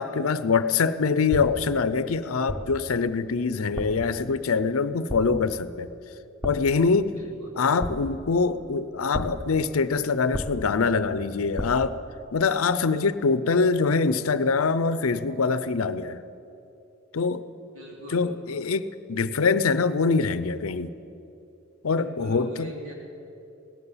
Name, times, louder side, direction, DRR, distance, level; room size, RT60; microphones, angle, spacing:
voice 1, 0.0-5.9 6.4-7.1 7.6-12.0 12.3-16.2 17.1-17.4 18.1-20.9 21.8-22.7, left 4 dB, 80° left, 14 dB, 0.6 m, -24 dB
sound 1, 1.3-1.8 2.5-2.9 3.7-4.1 5.1-5.5 6.4-6.8 7.8-8.4 9.1-9.6 10.3-10.9 11.6-12.0, equal, 5° right, 0.8 m, -34 dB
voice 2, 7.1-7.6 17.7-18.7 21.9-22.9, equal, 80° right, -2 dB, 3.5 m, -42 dB
17.5 x 11.0 x 7.3 m, 2.8 s
head